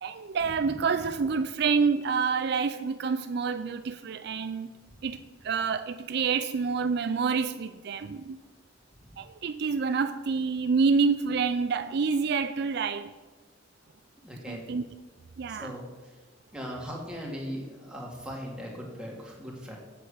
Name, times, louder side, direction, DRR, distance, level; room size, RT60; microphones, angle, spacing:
voice 1, 0.0-4.7 5.0-8.4 9.2-13.1 14.5-14.8 15.4-15.7, right 5 dB, 60° right, 0.4 m, -28 dB
voice 2, 14.2-14.6 15.5-16.1 16.5-19.8, equal, 5° right, 2.3 m, -39 dB
8.5 x 7.6 x 6.3 m
head